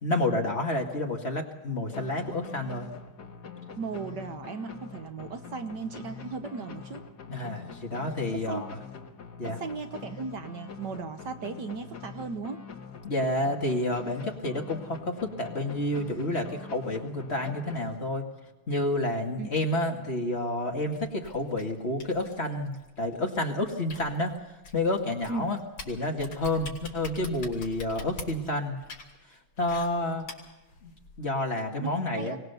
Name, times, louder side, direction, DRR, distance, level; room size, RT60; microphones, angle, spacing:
voice 1, 0.0-2.9 7.3-8.7 9.4-9.6 13.0-18.3 18.7-24.3 24.7-25.6 25.9-28.8 29.6-30.3 30.8-30.9 31.2-32.4, left 1 dB, 30° left, 2 dB, 2.2 m, -29 dB
sound 1, 1.9-18.5, left 6 dB, 55° left, 2.1 m, -44 dB
voice 2, 3.8-7.0 8.3-8.6 9.4-12.6 19.4-19.5 25.3-25.5 31.8-32.4, right 4 dB, 60° right, 8 dB, 1.5 m, -36 dB
sound 2, 20.9-31.2, left 2 dB, 80° left, 4.0 m, -45 dB
23.5 x 18.5 x 6.9 m, 1.0 s
omnidirectional pair, 2.2 m